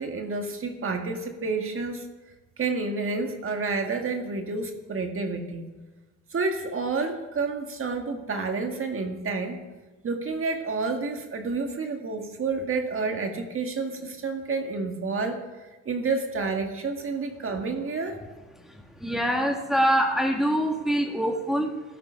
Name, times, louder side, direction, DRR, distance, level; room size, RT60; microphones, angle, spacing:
voice 1, 0.0-2.1 2.6-5.6 6.3-9.6 10.0-15.4 15.9-18.2, right 4 dB, 45° right, 4 dB, 1.8 m, -29 dB
voice 2, 18.6-21.8, equal, ahead, 2 dB, 1.6 m, -25 dB
14.5 x 12.5 x 5.6 m, 1.2 s
cardioid pair, 90°, 30 cm